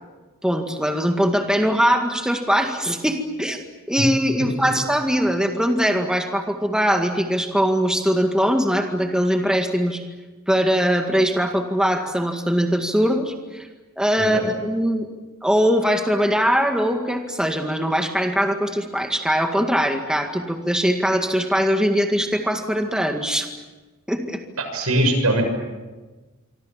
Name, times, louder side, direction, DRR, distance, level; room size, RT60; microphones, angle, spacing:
voice 1, 0.4-3.6 3.9-10.0 10.5-13.7 14.0-15.1 15.4-23.5 24.1-24.4, equal, 5° right, 4 dB, 1.9 m, -21 dB
voice 2, 24.7-25.4, right 1 dB, 85° right, 5 dB, 6.7 m, -20 dB
26.5 x 25.0 x 7.5 m, 1.2 s
head